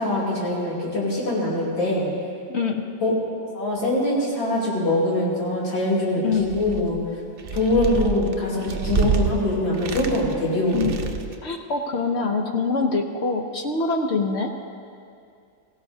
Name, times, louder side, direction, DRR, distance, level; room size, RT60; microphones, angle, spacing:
voice 1, 0.0-2.1 3.0-3.1 3.5-7.0 7.5-10.9, left 1 dB, 85° left, -6 dB, 3.6 m, -23 dB
voice 2, 2.5-2.8 6.2-6.5 10.7-10.9 11.4-14.5, left 4 dB, 60° left, 4 dB, 0.7 m, -24 dB
sound 1, 6.3-7.0 7.4-9.3 9.7-10.4 10.7-11.4, right 6 dB, 85° right, 0.5 m, -27 dB
17.5 x 15.5 x 2.7 m, 2.4 s
omnidirectional pair, 2.0 m